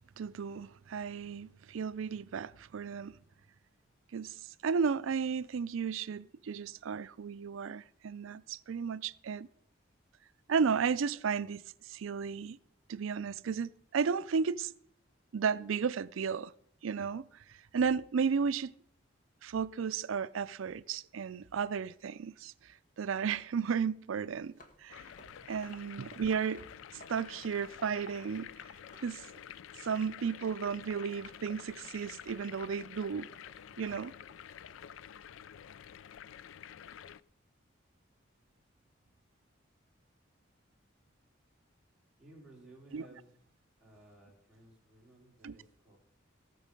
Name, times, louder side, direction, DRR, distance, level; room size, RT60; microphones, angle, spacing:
voice 1, 0.2-3.2 4.1-4.4 4.6-9.5 10.5-12.6 12.9-14.7 15.3-16.5 16.8-18.7 19.4-25.0 25.5-26.6 27.1-28.5 29.0-29.2 29.8-33.3 33.8-34.1 42.9-43.1 45.4-45.6, right 6 dB, 85° right, 0.4 m, -34 dB
sound 1, 24.4-28.5 28.7-34.9, equal, 40° left, 1.5 m, -61 dB
sound 2, 24.9-37.2, left 9 dB, 80° left, 0.4 m, -49 dB
voice 2, 42.2-43.3 43.8-46.0, right 1 dB, 5° right, 3.5 m, -57 dB
17.5 x 6.5 x 5.2 m
head